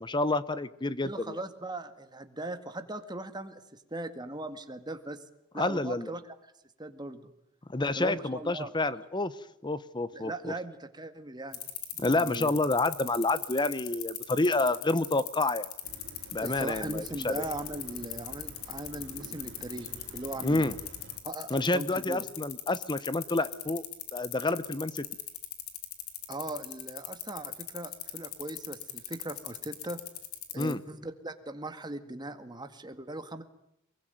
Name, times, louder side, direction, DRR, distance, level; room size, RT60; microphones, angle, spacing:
voice 1, 0.0-1.4 5.6-6.1 7.7-9.3 9.6-10.5 12.0-15.7 16.3-17.4 20.4-20.7 21.5-23.8 24.1-25.1 30.6-30.8, left 2 dB, 20° left, 15 dB, 0.9 m, -29 dB
voice 2, 1.0-5.2 5.5-6.4 6.8-7.3 8.0-8.7 10.1-11.6 11.9-12.5 16.4-20.7 21.2-22.2 26.3-30.0 30.5-33.4, right 2 dB, 20° right, 8 dB, 1.9 m, -39 dB
sound 1, 11.5-30.7, left 15 dB, 85° left, 3.5 m, -39 dB
sound 2, 15.8-21.2, right 1 dB, 55° right, 3.7 m, -49 dB
24.0 x 22.0 x 9.2 m, 0.77 s
head